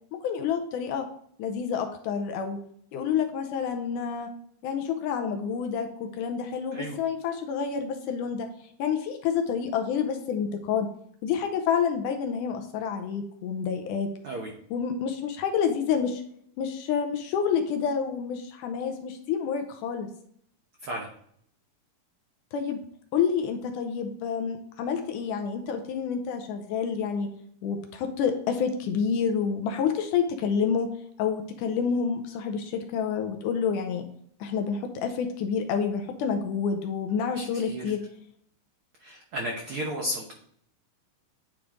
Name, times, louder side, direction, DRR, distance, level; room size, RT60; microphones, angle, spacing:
voice 1, 0.2-1.1 1.4-2.6 2.9-4.3 4.6-8.5 8.8-10.9 11.2-14.1 14.7-16.2 16.6-20.1 22.5-22.8 23.1-27.3 27.6-30.9 31.2-34.0 34.4-38.0, left 7 dB, 80° left, 5 dB, 2.0 m, -28 dB
voice 2, 37.4-37.8 39.0-40.3, equal, 85° right, 0 dB, 1.2 m, -33 dB
9.9 x 3.6 x 3.7 m, 0.65 s
omnidirectional pair, 4.0 m